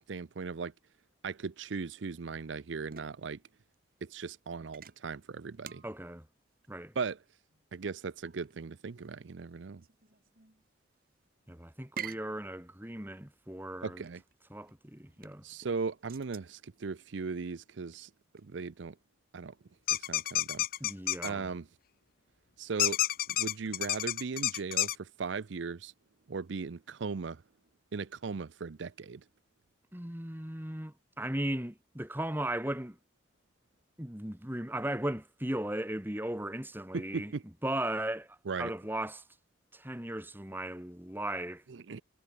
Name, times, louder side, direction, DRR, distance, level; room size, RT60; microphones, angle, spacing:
voice 1, 0.1-0.7 1.2-3.4 4.0-5.8 7.0-7.2 7.7-9.8 13.8-14.2 15.4-19.0 19.3-19.6 19.9-20.7 21.2-21.7 22.6-25.9 26.3-27.4 27.9-29.2 36.9-37.4 38.5-38.7 41.7-42.0, right 5 dB, 75° right, 0.5 m, -38 dB
sound 1, 2.1-18.6, right 7 dB, 50° right, 1.7 m, -51 dB
voice 2, 5.8-6.2 6.7-6.9 11.5-14.0 14.5-15.4 20.8-21.5 29.9-33.0 34.0-37.3 37.6-39.2 39.7-41.6, right 1 dB, 10° right, 1.8 m, -37 dB
sound 2, 19.9-21.3 22.8-25.0, left 14 dB, 50° left, 0.6 m, -29 dB
head